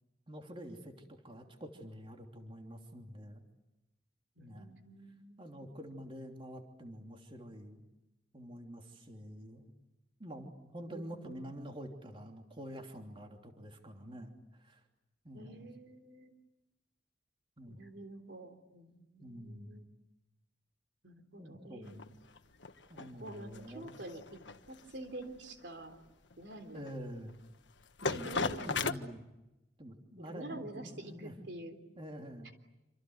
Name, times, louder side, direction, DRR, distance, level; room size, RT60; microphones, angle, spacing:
voice 1, 0.3-3.4 4.4-4.7 5.4-7.8 8.3-9.7 10.2-14.8 15.2-15.7 17.6-17.8 19.2-19.9 21.4-22.2 22.9-24.0 26.7-27.4 28.0-29.2 29.8-31.3 32.0-32.5, equal, 30° right, 3 dB, 3.1 m, -47 dB
voice 2, 4.4-5.7 10.9-11.5 15.3-16.3 17.7-19.9 21.0-22.1 23.2-24.4 24.7-26.0 26.4-26.9 28.1-28.9 30.3-31.8, right 1 dB, 70° right, 7 dB, 3.6 m, -47 dB
sound 1, 21.9-28.9, left 4 dB, 80° left, 1.4 m, -38 dB
28.0 x 26.5 x 8.0 m, 0.98 s
head